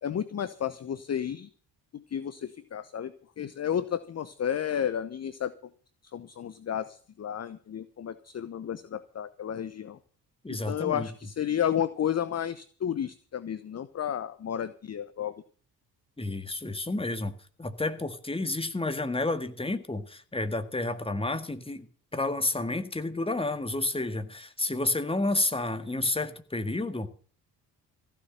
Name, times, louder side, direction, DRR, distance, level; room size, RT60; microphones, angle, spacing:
voice 1, 0.0-1.5 1.9-5.5 6.1-10.0 10.5-15.3, left 9 dB, 30° left, 15 dB, 0.9 m, -32 dB
voice 2, 10.4-11.1 16.2-17.3 17.6-27.1, left 2 dB, 10° left, 9 dB, 1.8 m, -30 dB
15.5 x 6.8 x 8.8 m, 0.43 s
figure-of-eight pair, 45°, 50 cm